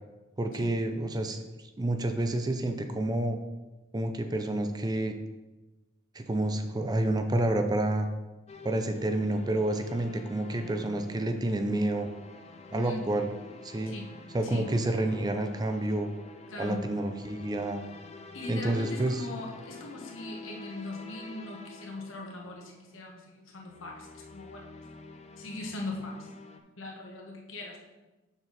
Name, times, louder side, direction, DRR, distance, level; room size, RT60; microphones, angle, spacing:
voice 1, 0.4-1.4 1.8-3.4 3.9-5.1 6.1-8.1 8.6-12.1 12.7-13.3 13.6-13.9 14.3-16.1 16.6-17.8 18.5-19.2, right 1 dB, 20° right, 6 dB, 0.4 m, -29 dB
sound 1, 8.5-22.9 23.5-26.6, left 3 dB, 30° left, 0.5 m, -48 dB
voice 2, 12.7-13.1 13.9-14.1 14.4-14.7 16.5-16.8 18.3-24.7 25.4-26.3 26.8-27.8, left 2 dB, 75° left, 0 dB, 1.5 m, -40 dB
6.9 x 6.1 x 4.1 m, 1.1 s
head